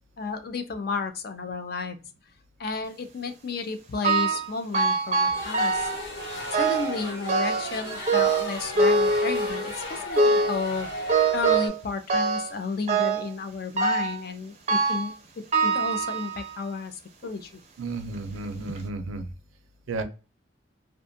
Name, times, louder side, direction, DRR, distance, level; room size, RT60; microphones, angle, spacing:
voice 1, 0.2-2.0 2.6-5.9 6.5-10.9 11.3-17.5, left 4 dB, 50° left, 8 dB, 0.4 m, -32 dB
sound 1, 4.0-4.5 4.7-6.0 6.5-7.0 7.3-7.8 8.1-9.7 10.2-10.6 11.1-11.8 12.1-12.5 12.9-13.3 13.8-14.2 14.7-15.1 15.5-16.6 17.2-17.3 18.1-18.2 18.7-18.8, right 3 dB, 35° right, 0.5 m, -24 dB
sound 2, 5.3-11.7, equal, 70° left, 1.2 m, -35 dB
voice 2, 17.8-19.3 19.9-20.0, right 3 dB, 85° right, 9 dB, 0.5 m, -32 dB
2.5 x 2.2 x 2.6 m, 0.32 s
head